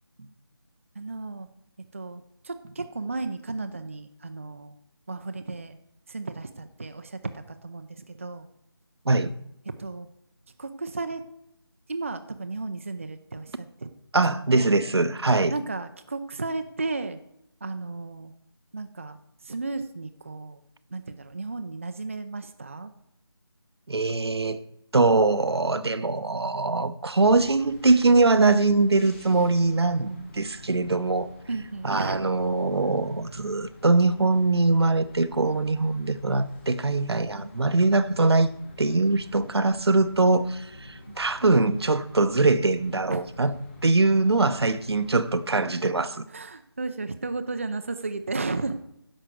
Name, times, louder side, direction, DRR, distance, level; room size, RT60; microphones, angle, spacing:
voice 1, 0.9-1.5 1.9-4.8 5.1-5.8 6.1-8.5 9.7-10.1 10.6-11.2 11.9-14.7 15.5-17.2 17.6-18.3 18.7-20.6 20.9-22.9 31.5-32.3 41.1-41.2 43.1-43.3 46.3-48.8, right 3 dB, 30° right, 0.5 m, -34 dB
voice 2, 14.1-15.5 23.9-24.6 24.9-31.3 31.8-38.5 38.8-43.5 43.8-46.2, right 3 dB, 80° right, 0.9 m, -22 dB
sound 1, 27.2-45.4, left 1 dB, 25° left, 2.0 m, -48 dB
10.5 x 6.6 x 6.2 m
figure-of-eight pair, 170°, 13 cm